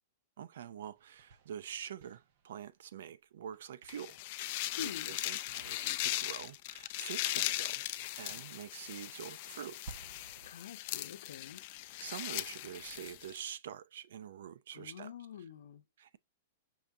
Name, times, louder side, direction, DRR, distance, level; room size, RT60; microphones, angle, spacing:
voice 1, 0.4-9.8 12.0-15.5 16.0-16.2, right 9 dB, 70° right, 0.5 m, -46 dB
sound 1, 1.0-2.9 3.5-4.4 5.2-7.9 8.3-10.6, right 4 dB, 45° right, 0.9 m, -57 dB
sound 2, 3.9-13.4, left 17 dB, 40° left, 0.3 m, -39 dB
voice 2, 4.8-5.2 10.5-11.6 14.7-15.8, left 8 dB, 90° left, 0.6 m, -46 dB
5.5 x 2.7 x 3.5 m
supercardioid pair, 175°, 0 cm